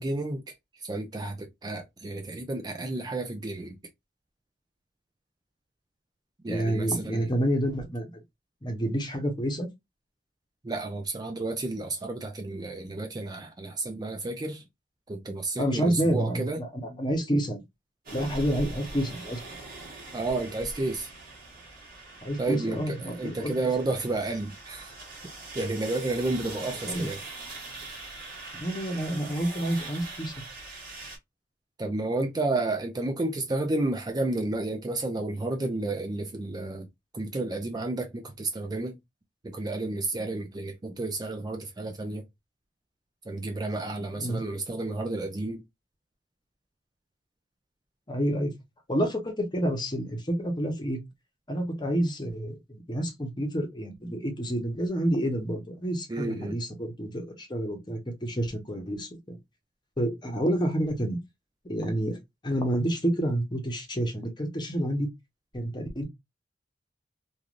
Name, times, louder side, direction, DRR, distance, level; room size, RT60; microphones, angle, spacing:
voice 1, 0.0-3.8 6.4-7.3 10.6-14.6 15.1-16.6 20.1-21.1 22.4-24.9 25.5-27.2 31.8-36.9 37.1-39.0 39.4-42.2 43.3-45.6 56.1-56.6, right 2 dB, 20° right, 0.4 m, -31 dB
voice 2, 6.5-8.2 8.6-9.7 15.6-17.6 18.1-19.4 22.2-23.5 26.8-27.1 28.5-30.3 44.2-44.4 48.1-48.5 48.9-51.0 51.5-59.4 60.0-61.2 61.6-62.2 62.4-65.1 65.5-66.0, right 1 dB, 25° left, 0.9 m, -29 dB
sound 1, 18.1-31.2, right 2 dB, 55° right, 1.5 m, -42 dB
3.2 x 2.4 x 2.4 m
head